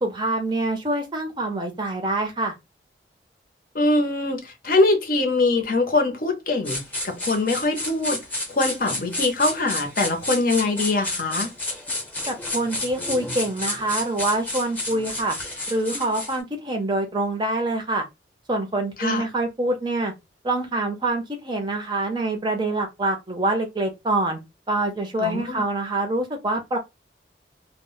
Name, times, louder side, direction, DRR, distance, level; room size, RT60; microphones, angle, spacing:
voice 1, 0.0-2.5 12.3-15.4 15.7-18.1 18.5-20.1 20.4-24.4 24.7-26.8, right 2 dB, 25° right, 0.5 m, -25 dB
voice 2, 3.7-11.5 19.0-19.2 25.2-25.6, left 2 dB, 50° left, 0.6 m, -23 dB
sound 1, 6.7-16.4, left 2 dB, 10° left, 0.7 m, -31 dB
2.1 x 2.0 x 3.6 m
head